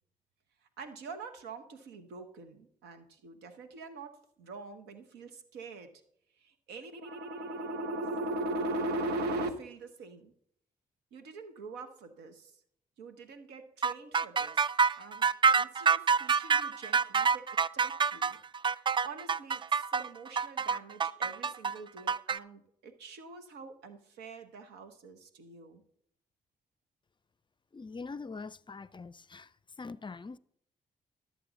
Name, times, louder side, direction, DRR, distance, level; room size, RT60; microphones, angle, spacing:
voice 1, 0.8-5.9 6.4-10.3 11.1-12.5 13.0-14.6 15.0-15.3 15.6-17.5 17.7-18.4 18.9-25.8, right 2 dB, 90° right, 1.0 m, -41 dB
sound 1, 13.8-22.4, right 5 dB, 30° right, 0.3 m, -27 dB
voice 2, 27.7-29.5 29.8-30.4, left 4 dB, 30° left, 0.5 m, -43 dB
12.5 x 7.7 x 4.0 m
supercardioid pair, 50°, 17 cm